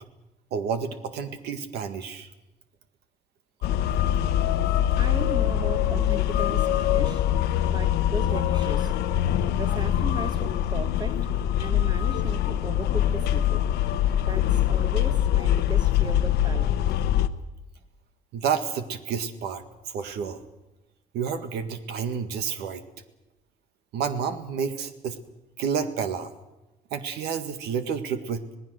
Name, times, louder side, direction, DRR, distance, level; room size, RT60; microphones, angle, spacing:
voice 1, 0.5-2.3 18.3-20.4 21.1-22.8 23.9-25.2 25.6-26.3 26.9-28.5, right 6 dB, 80° right, 1.9 m, -30 dB
sound 1, 3.6-17.3, left 11 dB, 80° left, 1.1 m, -23 dB
voice 2, 5.0-7.3 7.6-8.9 9.5-11.2 11.6-13.6 14.2-16.8, right 3 dB, 25° right, 1.3 m, -37 dB
26.0 x 18.5 x 6.4 m
cardioid pair, 110°, 17 cm